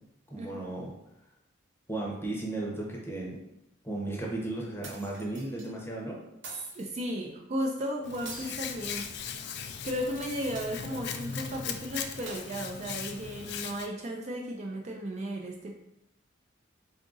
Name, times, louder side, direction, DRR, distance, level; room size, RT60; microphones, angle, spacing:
voice 1, 0.3-0.9 1.9-3.4 3.8-6.2, right 2 dB, 10° left, -3 dB, 0.7 m, -35 dB
sound 1, 4.8-5.7 6.4-7.0 8.2-9.5 10.5-11.2 12.3-13.2, right 3 dB, 70° right, 0.9 m, -47 dB
voice 2, 6.7-9.3 9.8-15.7, equal, 35° right, 1 dB, 0.4 m, -35 dB
Hands, 8.0-13.9, left 7 dB, 55° left, 0.3 m, -38 dB
3.7 x 2.5 x 3.8 m, 0.84 s
head